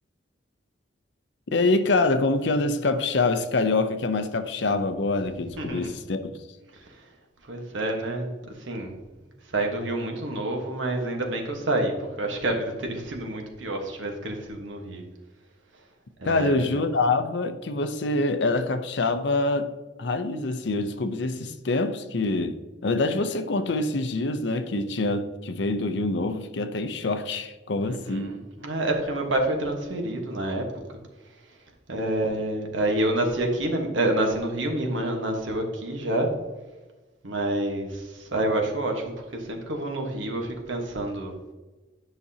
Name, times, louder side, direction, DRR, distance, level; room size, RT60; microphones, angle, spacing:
voice 1, 1.5-6.4 16.2-19.7 20.0-28.3, left 2 dB, 65° left, 0.6 m, -25 dB
voice 2, 5.3-5.9 6.7-7.1 7.4-8.9 9.5-15.0 16.2-16.8 27.8-30.7 31.9-36.3 37.2-41.3, right 1 dB, 85° right, 1.3 m, -28 dB
9.8 x 5.9 x 2.8 m
head